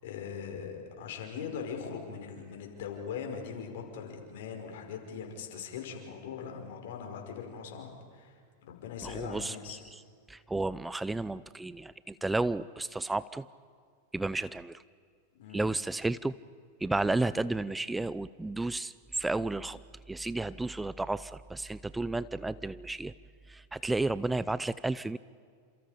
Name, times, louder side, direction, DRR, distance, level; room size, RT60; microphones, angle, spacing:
voice 1, 0.0-8.4 8.6-9.8 15.4-15.7, left 6 dB, 65° left, 3 dB, 5.4 m, -40 dB
voice 2, 9.0-9.8 10.3-13.5 14.1-14.8 15.5-16.4 16.8-19.8 20.1-23.1 23.5-25.2, right 2 dB, 10° right, 17 dB, 0.6 m, -32 dB
29.0 x 27.5 x 5.2 m, 2.1 s
hypercardioid pair, 100°, 0 cm